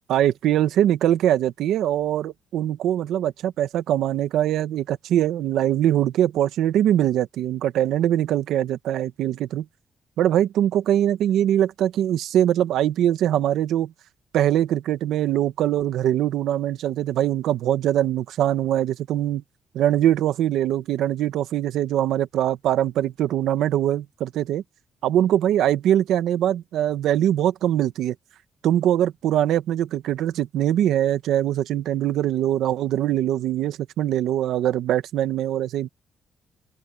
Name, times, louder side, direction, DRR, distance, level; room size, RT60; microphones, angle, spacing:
voice 1, 0.1-9.6 10.2-13.9 14.3-19.4 19.7-24.6 25.0-28.1 28.6-35.9, right 11 dB, 85° right, 1.3 m, -22 dB
open air
cardioid pair, 175°, 0 cm